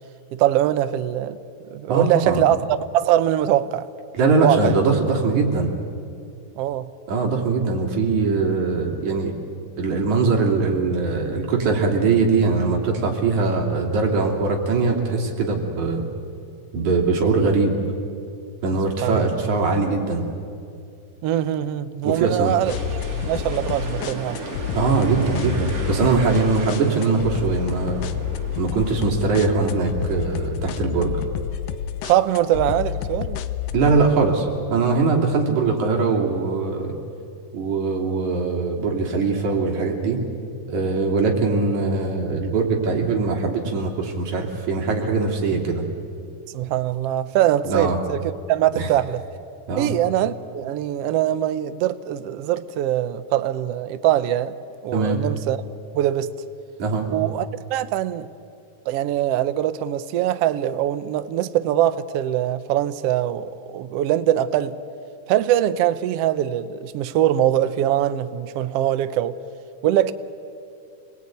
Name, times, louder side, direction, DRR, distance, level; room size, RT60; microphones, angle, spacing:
voice 1, 0.3-1.4 1.7-2.6 2.9-3.9 4.4-4.8 6.6-6.9 19.0-19.3 21.2-22.8 23.1-24.4 32.0-33.4 46.5-49.2 49.8-54.5 54.8-55.6 55.9-56.3 57.1-58.3 58.9-64.7 65.3-69.4 69.8-70.1, right 12 dB, 85° right, 1.3 m, -22 dB
voice 2, 1.9-2.4 4.1-5.7 7.1-9.4 9.8-16.1 16.7-17.8 18.6-20.2 22.0-22.5 24.7-28.1 28.6-31.2 33.7-37.0 37.5-40.2 40.7-45.8 47.7-48.0 48.7-48.9 49.7-49.9 54.9-55.2 56.8-57.1, right 4 dB, 60° right, 4.3 m, -21 dB
sound 1, 22.4-29.4, right 2 dB, 25° right, 3.4 m, -35 dB
sound 2, 22.7-34.0, left 10 dB, 80° left, 2.5 m, -29 dB
28.5 x 20.5 x 9.3 m
omnidirectional pair, 3.9 m